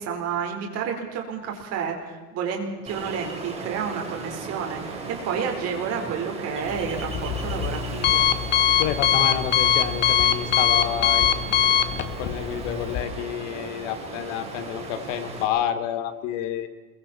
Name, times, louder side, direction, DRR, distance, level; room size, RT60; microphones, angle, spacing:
voice 1, 0.0-5.0 5.2-8.3, right 6 dB, 30° right, 2 dB, 4.5 m, -30 dB
Ocean, 2.9-15.4, right 3 dB, 10° right, 4.1 m, -36 dB
Alarm, 6.6-13.0, left 9 dB, 20° left, 1.1 m, -22 dB
voice 2, 8.8-11.5 12.2-16.7, left 9 dB, 50° left, 9 dB, 2.5 m, -29 dB
28.0 x 23.0 x 4.4 m, 1.4 s
supercardioid pair, 155°, 48 cm